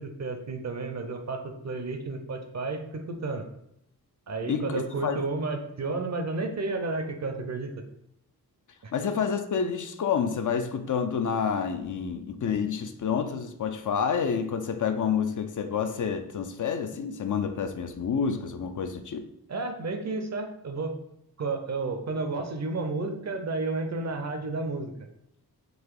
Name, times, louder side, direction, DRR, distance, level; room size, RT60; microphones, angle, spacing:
voice 1, 0.0-1.4 1.6-3.5 4.3-7.8 8.8-8.9 19.5-20.9 21.4-24.9, right 3 dB, 45° right, 6 dB, 0.6 m, -32 dB
voice 2, 4.5-5.2 8.9-19.3, left 6 dB, 55° left, 7 dB, 0.4 m, -29 dB
3.9 x 2.7 x 4.7 m, 0.78 s
wide cardioid pair, 145°, 38 cm